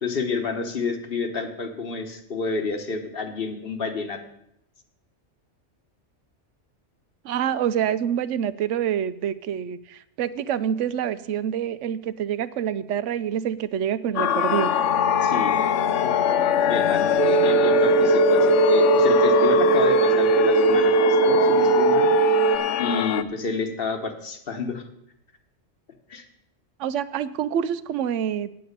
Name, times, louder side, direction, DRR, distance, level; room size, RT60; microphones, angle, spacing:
voice 1, 0.0-4.2 15.2-15.5 16.0-16.1 16.7-22.1 22.8-24.8 26.1-26.2, left 4 dB, 50° left, 6 dB, 1.3 m, -29 dB
voice 2, 7.2-14.7 26.8-28.5, right 9 dB, 80° right, 15 dB, 0.9 m, -26 dB
sound 1, 14.2-23.2, left 9 dB, 80° left, 0.9 m, -22 dB
sound 2, 17.2-22.6, right 9 dB, 55° right, 0.4 m, -20 dB
9.1 x 8.6 x 6.6 m, 0.76 s
omnidirectional pair, 1.2 m